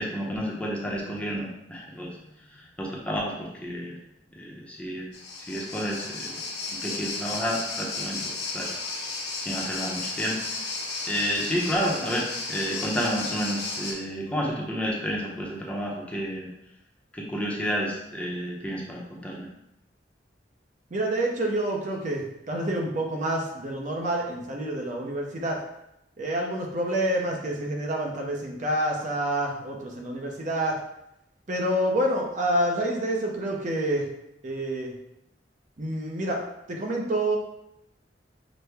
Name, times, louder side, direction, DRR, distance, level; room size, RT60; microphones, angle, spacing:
voice 1, 0.0-2.1 2.8-4.0 4.4-5.0 5.5-6.4 6.7-8.7 9.4-10.4 11.0-16.5 17.1-19.5, equal, 5° left, -3 dB, 0.7 m, -30 dB
sound 1, 5.1-13.9, left 3 dB, 70° left, 1.2 m, -34 dB
voice 2, 20.9-25.6 26.2-30.8 31.5-34.1 34.4-34.9 35.8-36.4 36.7-37.4, right 1 dB, 45° right, 0 dB, 0.7 m, -28 dB
6.0 x 2.1 x 3.4 m, 0.83 s
head